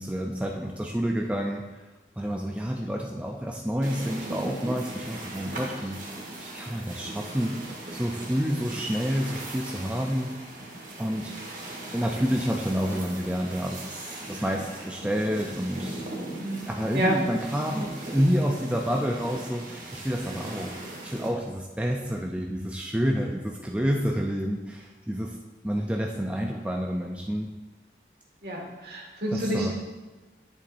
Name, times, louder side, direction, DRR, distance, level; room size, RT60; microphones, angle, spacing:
voice 1, 0.0-1.6 2.2-6.0 6.4-7.6 7.9-10.3 11.0-11.3 11.9-16.0 16.7-25.4 25.6-27.5 29.3-29.7, equal, 5° right, 1 dB, 0.4 m, -29 dB
sound 1, 3.8-21.3, right 1 dB, 45° right, 1.6 m, -39 dB
voice 2, 16.3-16.7 16.9-17.2 28.4-29.7, right 1 dB, 60° right, -1 dB, 1.9 m, -28 dB
11.0 x 7.1 x 2.6 m, 1.2 s
head